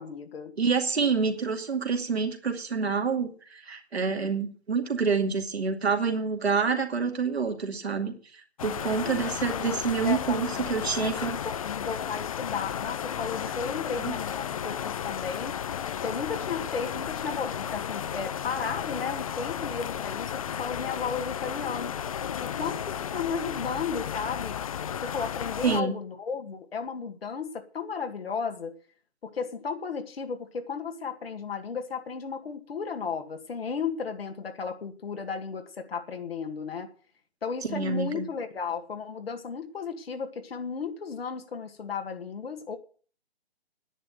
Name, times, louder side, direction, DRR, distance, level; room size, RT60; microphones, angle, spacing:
voice 1, 0.0-0.5 10.0-10.7 11.0-15.6 16.0-21.9 22.4-24.6 24.8-28.7 29.2-36.9 37.4-42.8, left 5 dB, 65° left, 5 dB, 2.0 m, -34 dB
voice 2, 0.6-11.3 14.0-14.1 25.6-26.0 37.6-38.3, right 5 dB, 75° right, 4 dB, 2.5 m, -27 dB
sound 1, 8.6-25.8, left 9 dB, 35° left, 0.5 m, -33 dB
10.0 x 9.7 x 7.8 m, 0.42 s
figure-of-eight pair, 135°, 33 cm